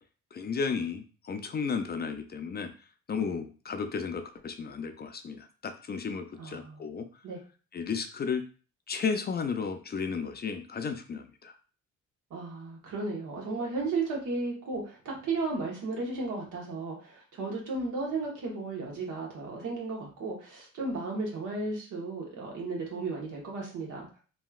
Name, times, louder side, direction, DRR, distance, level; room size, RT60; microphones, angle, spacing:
voice 1, 0.3-7.2 7.7-8.4 8.9-11.6, left 5 dB, 35° left, 8 dB, 0.4 m, -34 dB
voice 2, 6.4-6.8 7.2-7.4 12.3-24.1, right 3 dB, 80° right, -1 dB, 1.3 m, -34 dB
3.0 x 2.7 x 2.3 m, 0.37 s
cardioid pair, 90°, 30 cm